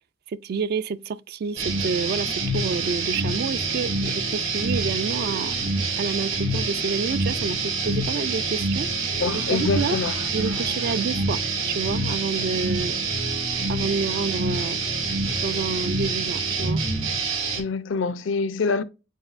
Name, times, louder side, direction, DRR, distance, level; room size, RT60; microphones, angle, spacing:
voice 1, 0.3-5.6 6.0-10.0 10.3-13.0 13.7-14.8 15.4-16.8, right 5 dB, 50° right, 0.3 m, -29 dB
sound 1, 1.6-17.6, right 3 dB, 85° right, 2.0 m, -26 dB
voice 2, 9.2-10.7 17.6-18.8, left 4 dB, 65° left, 0.4 m, -26 dB
7.5 x 2.6 x 2.4 m
head